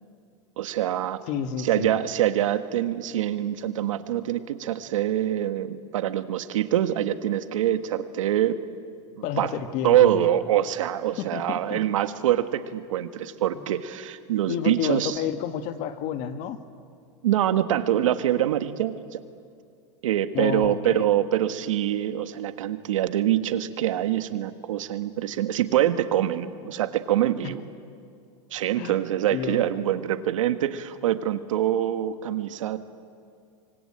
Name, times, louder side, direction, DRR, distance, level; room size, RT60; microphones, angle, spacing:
voice 1, 0.6-1.2 1.6-8.6 9.2-9.5 9.8-15.2 17.2-19.2 20.0-27.6 28.5-32.8, right 12 dB, 90° right, 10 dB, 1.6 m, -25 dB
voice 2, 1.3-1.9 9.2-10.3 11.2-11.8 14.5-16.6 20.3-21.0 27.4-27.5 28.8-28.9 29.3-29.7, left 9 dB, 45° left, 9 dB, 1.7 m, -30 dB
25.0 x 23.0 x 8.8 m, 2.3 s
supercardioid pair, 140°, 16 cm